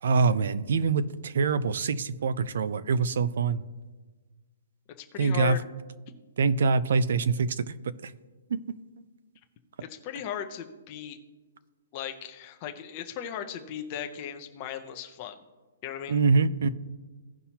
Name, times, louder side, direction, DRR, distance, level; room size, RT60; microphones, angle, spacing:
voice 1, 0.0-3.6 5.2-5.6 6.4-8.1 8.5-8.8 16.1-16.7, right 4 dB, 55° right, 15 dB, 0.5 m, -25 dB
voice 2, 5.0-5.6 9.8-11.2 11.9-15.4 15.8-16.2, left 9 dB, 20° left, 5 dB, 0.6 m, -37 dB
16.5 x 5.6 x 2.9 m, 1.3 s
hypercardioid pair, 180°, 0 cm